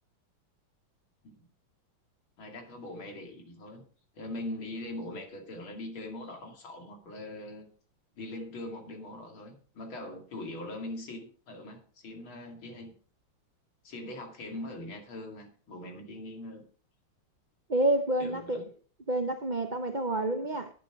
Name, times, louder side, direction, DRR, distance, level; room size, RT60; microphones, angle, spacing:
voice 1, 2.4-3.8 4.1-7.7 8.2-12.9 13.8-16.6 18.2-18.6, left 1 dB, 75° left, 3.4 m, -41 dB
voice 2, 17.7-18.6 19.1-20.7, right 1 dB, 55° right, 0.5 m, -28 dB
11.5 x 9.2 x 4.8 m
omnidirectional pair, 2.2 m